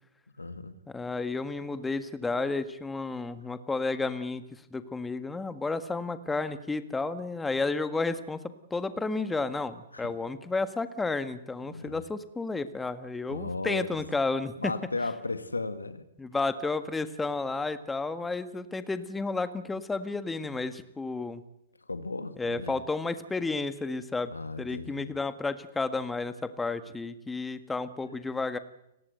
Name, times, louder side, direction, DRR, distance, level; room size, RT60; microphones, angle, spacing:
voice 1, 0.3-0.8 9.9-10.1 11.6-12.0 13.3-14.0 14.6-16.1 21.8-22.8 24.3-25.2, left 3 dB, 85° left, 11 dB, 1.9 m, -35 dB
voice 2, 0.9-4.4 4.7-8.4 8.7-14.7 16.2-21.4 22.4-24.3 24.6-28.6, left 3 dB, 10° left, 11 dB, 1.7 m, -32 dB
30.0 x 18.5 x 8.0 m, 0.86 s
figure-of-eight pair, 110°, 0 cm